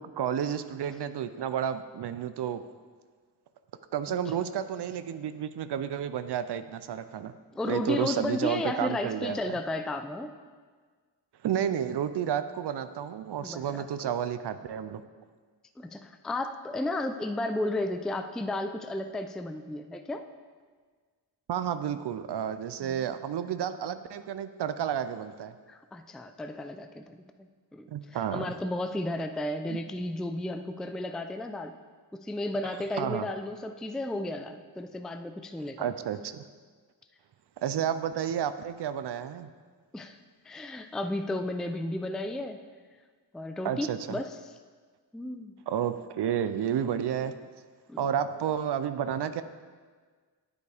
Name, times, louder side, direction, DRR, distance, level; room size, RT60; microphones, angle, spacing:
voice 1, 0.0-2.6 3.9-7.3 7.6-9.6 11.4-15.0 21.5-25.5 27.9-28.5 29.7-29.8 32.6-33.3 35.8-36.4 37.6-39.5 43.6-44.2 45.7-47.3 48.0-49.4, right 9 dB, 70° right, 11 dB, 0.5 m, -31 dB
voice 2, 7.5-10.3 13.4-14.1 15.8-20.2 22.8-23.0 25.7-27.2 27.7-27.9 28.3-31.7 32.1-35.9 39.9-40.2 40.4-42.6 43.3-44.5 45.1-45.6 47.9-48.0, left 1 dB, ahead, 8 dB, 0.4 m, -33 dB
9.4 x 8.2 x 3.4 m, 1.5 s
cardioid pair, 65°, 43 cm